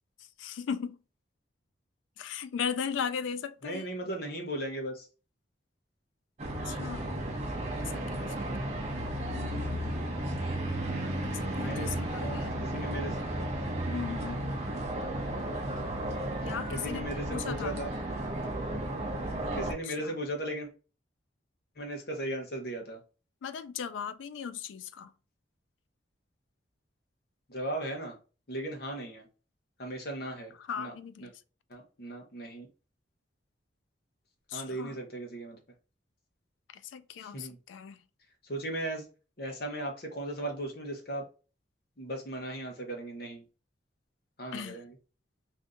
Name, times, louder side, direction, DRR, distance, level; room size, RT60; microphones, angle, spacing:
voice 1, 0.4-1.0 2.2-3.9 6.7-7.2 7.8-8.7 11.2-12.5 13.9-14.4 16.4-17.8 19.8-20.1 23.4-25.1 30.7-31.3 34.5-35.0 36.7-38.0 44.5-44.8, left 7 dB, 90° left, 0.3 m, -37 dB
voice 2, 3.6-5.1 9.3-9.6 11.6-11.9 12.2-13.2 16.7-17.9 19.5-20.7 21.8-23.0 27.5-28.2 28.5-29.3 29.8-30.9 31.2-31.3 31.7-32.7 34.5-35.6 37.2-37.6 38.5-39.1 39.4-41.2 42.0-43.4 44.4-44.9, right 1 dB, 55° left, 0.9 m, -37 dB
sound 1, 6.4-19.7, right 1 dB, 35° right, 0.6 m, -34 dB
2.6 x 2.6 x 3.5 m
head